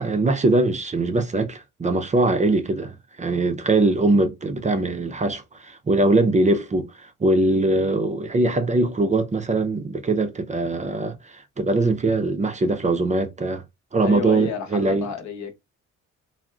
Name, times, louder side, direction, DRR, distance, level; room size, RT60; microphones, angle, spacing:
voice 1, 0.0-13.6 13.9-15.1, right 2 dB, 25° right, 0.5 m, -22 dB
voice 2, 14.0-15.5, left 5 dB, 65° left, 0.9 m, -31 dB
3.6 x 2.0 x 2.3 m
cardioid pair, 90°, 30 cm